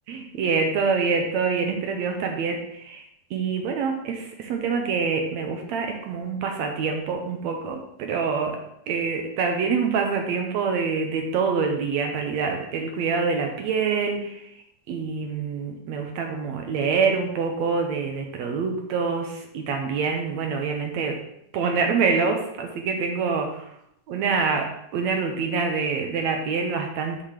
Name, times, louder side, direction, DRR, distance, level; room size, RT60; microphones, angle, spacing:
voice 1, 0.1-3.0 3.3-8.6 8.9-14.4 14.9-21.2 21.5-23.6 24.1-24.7 24.9-27.2, right 5 dB, 70° right, 3 dB, 1.9 m, -26 dB
5.8 x 5.1 x 6.4 m, 0.77 s
omnidirectional pair, 3.6 m